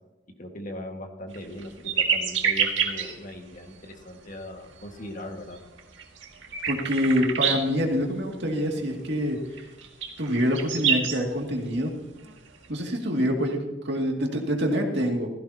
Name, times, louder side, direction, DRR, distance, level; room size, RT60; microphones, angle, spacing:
voice 1, 0.4-5.6, left 1 dB, 45° left, 3 dB, 1.8 m, -39 dB
sound 1, 1.3-3.3 3.9-4.0 4.4-4.5 4.8-5.0 5.6-7.7 9.6-11.2 12.3-12.6, right 6 dB, 85° right, 2.0 m, -27 dB
voice 2, 6.7-9.7 10.2-11.9 12.7-15.3, equal, 65° right, 1 dB, 2.4 m, -26 dB
16.0 x 15.5 x 2.9 m, 1.0 s
head